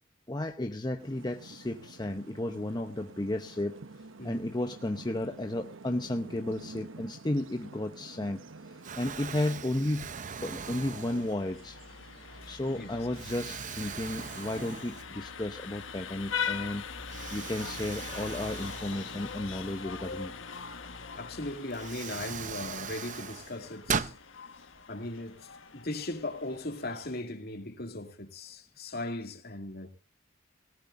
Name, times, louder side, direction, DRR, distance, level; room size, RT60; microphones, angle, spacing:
voice 1, 0.3-3.8 4.2-8.4 9.0-11.8 12.5-16.8 17.3-20.3, left 1 dB, 20° left, 0.8 m, -33 dB
sound 1, 1.0-14.7, right 3 dB, 90° right, 0.9 m, -50 dB
Explosion, 8.1-8.5 8.8-11.7 12.3-12.4 13.1-15.4 15.7-15.8 17.1-19.7 21.1-21.2 21.7-24.2, right 6 dB, 40° right, 0.7 m, -39 dB
Vehicle horn car horn honking, 10.4-27.2, left 6 dB, 85° left, 1.4 m, -42 dB
voice 2, 21.2-24.1 24.9-29.9, left 2 dB, 55° left, 2.4 m, -38 dB
19.0 x 18.0 x 2.6 m
head